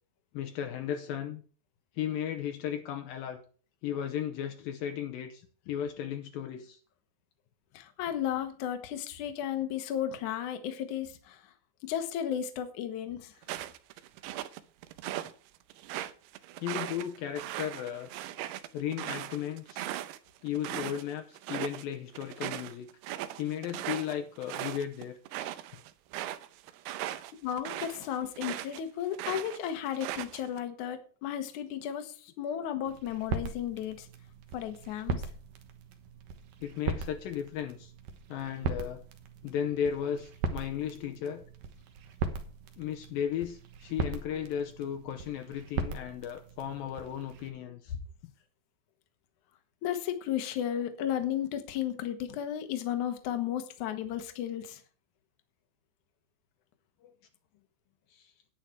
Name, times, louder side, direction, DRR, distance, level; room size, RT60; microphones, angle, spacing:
voice 1, 0.3-1.4 2.0-3.4 3.8-6.8 16.6-18.1 18.7-19.9 20.4-22.9 23.4-25.2 36.6-37.9 38.3-39.0 39.4-41.4 42.8-47.9 57.0-57.1 58.1-58.3, left 9 dB, 90° left, 5 dB, 2.0 m, -35 dB
voice 2, 7.7-11.5 11.8-13.3 27.1-34.1 34.5-35.2 49.8-54.8, left 10 dB, 70° left, 8 dB, 1.8 m, -34 dB
sound 1, 13.4-15.3 15.7-21.0 21.3-21.8 22.1-28.8 29.1-30.6, right 13 dB, 85° right, 2.5 m, -38 dB
sound 2, 32.9-47.5, right 4 dB, 65° right, 2.3 m, -39 dB
10.5 x 9.7 x 4.5 m, 0.41 s
omnidirectional pair, 5.3 m